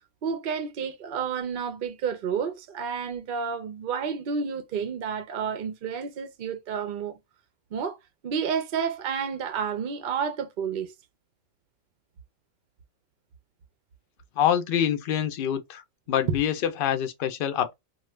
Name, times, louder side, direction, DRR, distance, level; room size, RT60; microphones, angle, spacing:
voice 1, 0.2-7.2 7.7-8.0 8.2-10.9 16.3-16.4, right 6 dB, 55° right, 0.6 m, -30 dB
voice 2, 14.4-15.8 16.1-17.7, left 10 dB, 55° left, 0.6 m, -25 dB
2.5 x 2.4 x 3.1 m
omnidirectional pair, 1.5 m